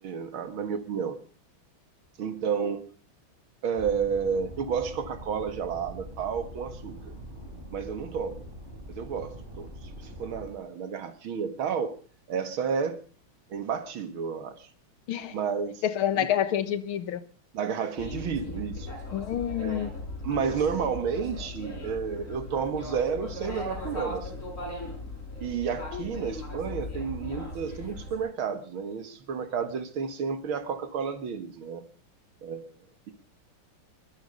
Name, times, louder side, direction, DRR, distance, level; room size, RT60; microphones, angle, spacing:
voice 1, 0.0-1.2 2.2-2.9 3.6-7.2 7.7-8.4 8.9-9.7 10.0-11.9 12.3-13.0 13.5-14.7 15.3-15.8 16.2-16.3 17.5-18.9 19.6-19.8 20.2-24.5 25.4-31.8 32.4-32.7, right 6 dB, 75° right, 11 dB, 2.5 m, -31 dB
sound 1, 3.8-10.5, equal, 25° right, 6.7 m, -43 dB
voice 2, 15.8-17.2 19.1-19.9 25.9-26.0, left 10 dB, 85° left, 14 dB, 2.0 m, -28 dB
sound 2, 18.0-28.2, left 2 dB, 35° left, 5.6 m, -38 dB
22.0 x 11.5 x 5.2 m, 0.38 s
omnidirectional pair, 2.3 m